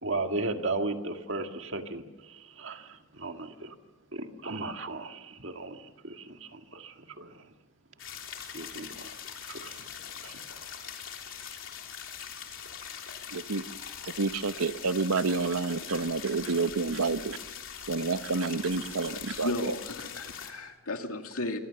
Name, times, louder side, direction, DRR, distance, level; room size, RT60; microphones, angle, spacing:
voice 1, 0.0-3.8 4.1-7.5 8.5-9.1 9.4-10.4 15.2-15.4 15.9-16.0 16.4-16.5 18.8-19.4, right 3 dB, 55° right, 5 dB, 1.9 m, -36 dB
sound 1, 8.0-20.5, left 8 dB, 60° left, 3.3 m, -42 dB
voice 2, 13.3-13.6 14.2-17.4 17.9-19.7, right 4 dB, 85° right, 12 dB, 1.0 m, -29 dB
voice 3, 19.3-21.6, left 2 dB, 75° left, 4 dB, 2.4 m, -35 dB
26.0 x 24.0 x 6.9 m, 1.0 s
head